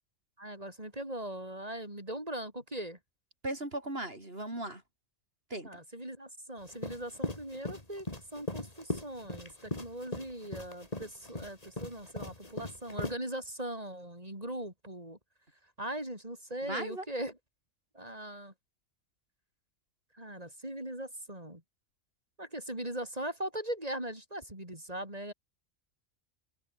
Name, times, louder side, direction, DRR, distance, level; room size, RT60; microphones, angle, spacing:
voice 1, 0.4-3.0 5.6-8.1 8.3-15.2 15.8-17.4 17.9-18.5 20.1-21.6 22.4-25.3, right 1 dB, 30° right, 7.8 m, -40 dB
voice 2, 3.4-4.8 5.5-5.7 16.6-17.0, right 1 dB, 45° right, 6.8 m, -37 dB
sound 1, 6.7-13.1, left 2 dB, 30° left, 3.6 m, -39 dB
omnidirectional pair, 1.4 m